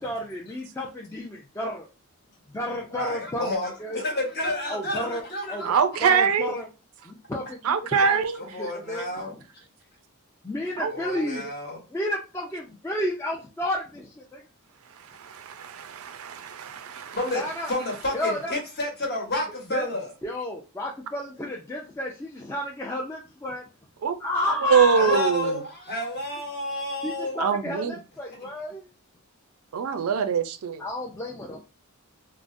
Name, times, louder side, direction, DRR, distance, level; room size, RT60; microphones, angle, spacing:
voice 1, 0.0-1.9 2.5-4.0 4.7-5.7 6.0-6.7 7.1-7.6 8.0-8.2 8.6-9.1 10.4-11.4 11.9-14.4 17.3-17.7 18.1-18.5 19.7-19.9 20.2-23.6 24.2-25.2 27.0-28.9 30.8-31.6, left 1 dB, 10° left, 0.4 m, -31 dB
voice 2, 2.9-5.7 7.9-9.3 10.9-11.8 17.1-20.1 24.9-27.5, left 1 dB, 50° left, 1.1 m, -30 dB
voice 3, 5.6-6.5 7.6-8.4 10.8-11.3 15.2-15.3 16.9-17.2 24.0-24.1 24.6-25.6 27.4-27.9 29.7-30.8, right 6 dB, 70° right, 0.4 m, -23 dB
3.5 x 2.0 x 2.5 m
head